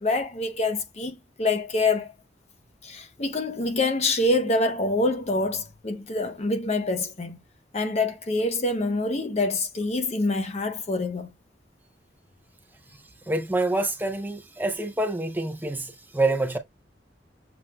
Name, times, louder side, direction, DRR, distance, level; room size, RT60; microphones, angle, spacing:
voice 1, 0.0-2.1 2.8-7.4 7.7-11.3, left 2 dB, 40° left, 0.8 m, -26 dB
voice 2, 13.3-16.6, right 2 dB, 10° right, 0.6 m, -26 dB
6.9 x 2.5 x 2.2 m
head